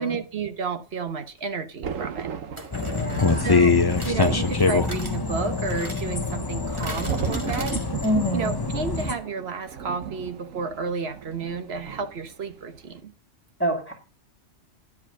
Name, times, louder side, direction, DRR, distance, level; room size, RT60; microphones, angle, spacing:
voice 1, 0.0-2.3 3.4-3.8 4.0-7.8 8.3-13.1, right 5 dB, 55° right, 1.2 m, -31 dB
sound 1, 1.3-1.4 2.6-8.3 8.6-8.7 8.9-9.0, right 1 dB, 20° right, 1.8 m, -41 dB
Thunder, 1.8-12.4 12.7-13.0, right 7 dB, 80° right, 1.3 m, -36 dB
sound 2, 2.7-9.2, left 4 dB, 25° left, 0.5 m, -24 dB
voice 2, 2.8-3.6 8.0-8.5 13.6-13.9, equal, 10° left, 2.4 m, -26 dB
10.5 x 4.8 x 7.2 m
omnidirectional pair, 1.4 m